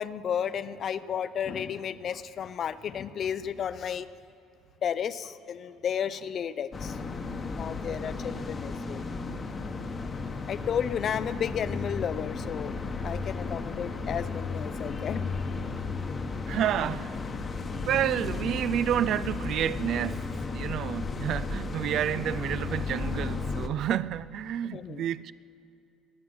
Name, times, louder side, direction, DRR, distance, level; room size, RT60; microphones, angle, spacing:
voice 1, 0.0-4.1 4.8-7.0 7.3-9.0 10.5-12.7 13.0-15.3 24.7-25.0, left 8 dB, 45° left, 0.5 m, -33 dB
sound 1, 6.7-23.7, left 4 dB, 25° left, 1.0 m, -34 dB
voice 2, 16.5-17.1 17.8-25.3, right 10 dB, 55° right, 0.4 m, -29 dB
21.0 x 7.3 x 7.9 m
cardioid pair, 130°, 0 cm